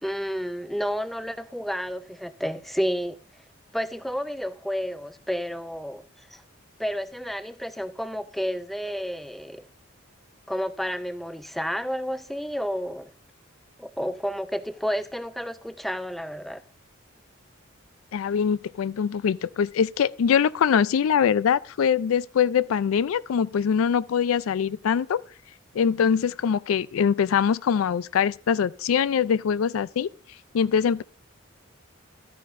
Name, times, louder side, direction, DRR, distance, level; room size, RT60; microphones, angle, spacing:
voice 1, 0.0-3.2 3.7-6.0 6.3-6.4 6.8-9.6 10.5-13.1 13.8-16.6, equal, ahead, 0.4 m, -30 dB
voice 2, 18.1-25.2 25.7-30.1 30.5-31.0, left 7 dB, 90° left, 0.4 m, -23 dB
13.0 x 9.4 x 2.6 m
head